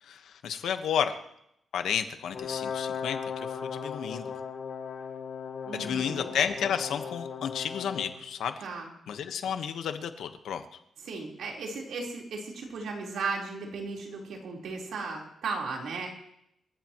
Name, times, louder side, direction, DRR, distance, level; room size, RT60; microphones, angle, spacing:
voice 1, 0.0-1.1 1.7-4.4 5.7-8.5 9.1-10.6, left 8 dB, 85° left, 8 dB, 1.3 m, -32 dB
Brass instrument, 2.3-8.2, left 6 dB, 65° left, 2.5 m, -37 dB
voice 2, 5.7-6.3 8.6-8.9 11.0-16.1, right 4 dB, 80° right, -1 dB, 4.1 m, -36 dB
27.5 x 14.5 x 3.1 m, 0.77 s
wide cardioid pair, 160°, 0 cm